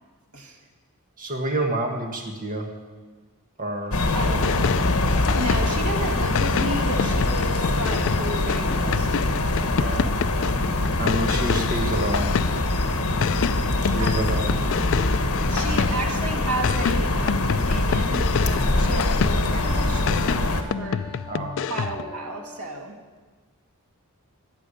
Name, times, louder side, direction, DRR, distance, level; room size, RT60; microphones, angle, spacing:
voice 1, 1.2-2.7 3.6-4.1 9.8-10.1 11.0-12.4 13.8-14.5 21.3-21.5, right 1 dB, 40° right, 2 dB, 1.6 m, -28 dB
sound 1, 3.9-20.6, left 2 dB, 75° left, 1.4 m, -23 dB
voice 2, 4.1-4.7 5.3-9.5 14.0-14.4 15.5-21.1 21.7-22.9, right 1 dB, 80° right, 1 dB, 2.3 m, -33 dB
sound 2, 4.3-5.9 6.3-12.8 13.2-16.2 16.6-19.6 20.1-22.1, left 7 dB, 60° left, 0.4 m, -28 dB
Wind instrument woodwind instrument, 18.5-22.7, left 1 dB, 20° right, 1.2 m, -42 dB
15.0 x 7.6 x 9.9 m, 1.3 s
head